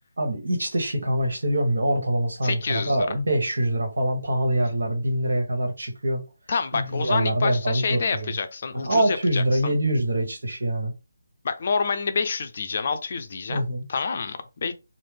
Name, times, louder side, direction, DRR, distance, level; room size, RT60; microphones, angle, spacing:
voice 1, 0.2-6.2 6.7-8.3 8.7-10.9 13.5-13.8, right 1 dB, 75° right, 1.3 m, -24 dB
voice 2, 2.4-3.1 6.5-9.7 11.4-13.6 13.9-14.7, left 5 dB, 45° left, 0.5 m, -28 dB
3.2 x 2.1 x 3.4 m
figure-of-eight pair, 155°, 0 cm